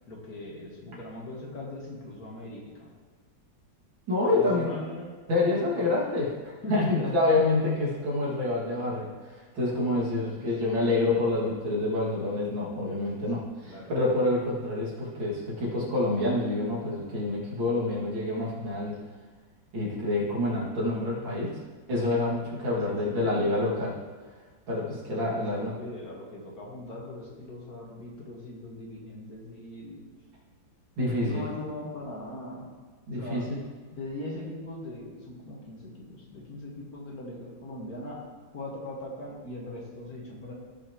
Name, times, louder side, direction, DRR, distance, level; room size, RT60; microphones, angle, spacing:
voice 1, 0.1-2.9 4.3-5.1 5.4-5.9 6.6-7.0 8.8-8.9 10.2-10.5 13.1-13.9 22.8-23.6 25.3-30.1 31.1-32.7 33.2-33.5 33.9-38.3 38.5-40.5, left 1 dB, 50° left, -2 dB, 2.0 m, -40 dB
voice 2, 4.1-4.7 5.3-19.0 19.7-21.6 21.9-24.0 24.7-25.7 31.0-31.5 33.1-33.6, left 2 dB, 85° right, -5 dB, 3.0 m, -27 dB
16.0 x 6.1 x 3.0 m, 1.4 s
omnidirectional pair, 2.1 m